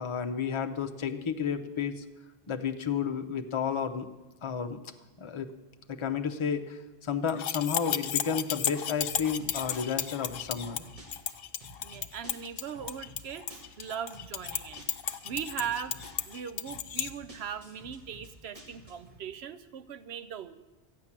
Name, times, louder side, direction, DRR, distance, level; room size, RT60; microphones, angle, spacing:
voice 1, 0.0-2.0 2.5-4.1 4.4-4.8 5.2-5.5 5.9-10.8, left 7 dB, 30° left, 6 dB, 0.7 m, -32 dB
sound 1, 7.3-17.1, left 9 dB, 65° left, 0.8 m, -34 dB
sound 2, 9.1-19.2, equal, 30° right, 2.2 m, -52 dB
voice 2, 11.8-16.0 16.2-20.6, right 8 dB, 75° right, 12 dB, 0.9 m, -39 dB
13.5 x 9.6 x 7.3 m, 1.1 s
omnidirectional pair, 1.1 m